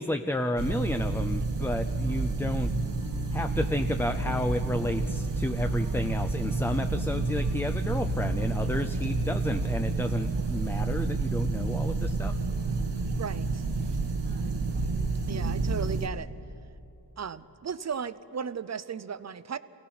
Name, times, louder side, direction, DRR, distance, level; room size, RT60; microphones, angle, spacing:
voice 1, 0.0-2.7 3.3-12.3 14.9-15.0, left 1 dB, 5° left, 7 dB, 0.4 m, -31 dB
sound 1, 0.6-16.1, right 3 dB, 85° right, 1.3 m, -29 dB
sound 2, 2.0-8.9, left 2 dB, 40° left, 1.5 m, -45 dB
voice 2, 13.2-13.6 15.3-16.3 17.2-19.6, right 6 dB, 40° right, 15 dB, 0.6 m, -35 dB
27.0 x 17.5 x 5.8 m, 2.8 s
wide cardioid pair, 135°, 41 cm